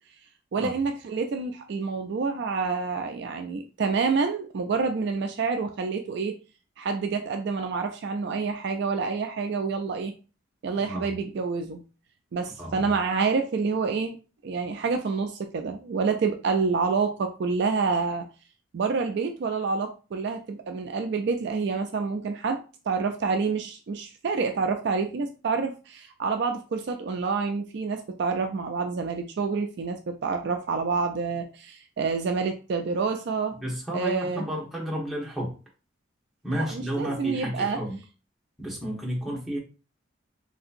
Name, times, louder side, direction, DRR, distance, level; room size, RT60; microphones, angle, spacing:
voice 1, 0.5-6.4 6.8-10.1 10.6-11.8 12.3-14.2 14.4-18.2 18.7-22.6 22.9-33.6 33.9-34.5 36.5-37.8, right 4 dB, 55° right, 5 dB, 0.3 m, -28 dB
voice 2, 10.8-11.1 12.6-12.9 33.6-35.5 36.4-38.0 38.6-39.6, equal, ahead, -5 dB, 1.0 m, -31 dB
3.3 x 2.8 x 2.5 m, 0.34 s
head